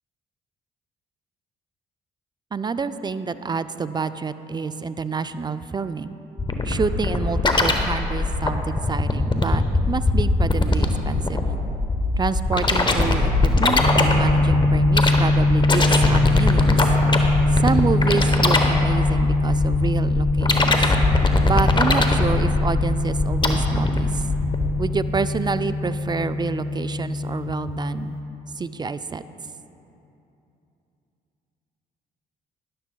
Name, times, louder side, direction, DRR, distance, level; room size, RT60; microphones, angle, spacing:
voice 1, 2.5-6.1 6.6-11.5 12.2-16.9 17.5-20.9 21.4-24.2 24.8-28.2 28.6-29.2, right 5 dB, 25° right, 12 dB, 0.3 m, -28 dB
sound 1, 6.4-24.7, left 2 dB, 25° left, 0.9 m, -21 dB
sound 2, 13.8-28.2, left 2 dB, 60° left, 1.0 m, -23 dB
13.0 x 11.0 x 2.3 m, 2.9 s
supercardioid pair, 60°, 18 cm